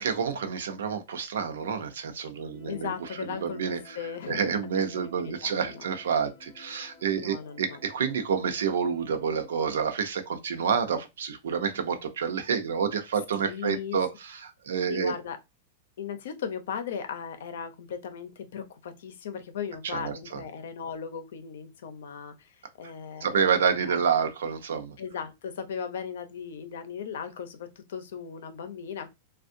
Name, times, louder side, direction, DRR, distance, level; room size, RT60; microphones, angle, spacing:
voice 1, 0.0-4.0 4.3-15.2 19.8-20.4 23.2-25.0, right 7 dB, 85° right, 0.7 m, -29 dB
sound 1, 2.5-9.8, left 2 dB, 15° left, 1.4 m, -52 dB
voice 2, 2.7-4.6 5.0-5.9 7.1-7.8 13.3-14.0 14.9-15.4 16.0-24.0 25.0-29.1, left 7 dB, 65° left, 0.7 m, -37 dB
3.5 x 2.3 x 2.6 m
supercardioid pair, 170°, 0 cm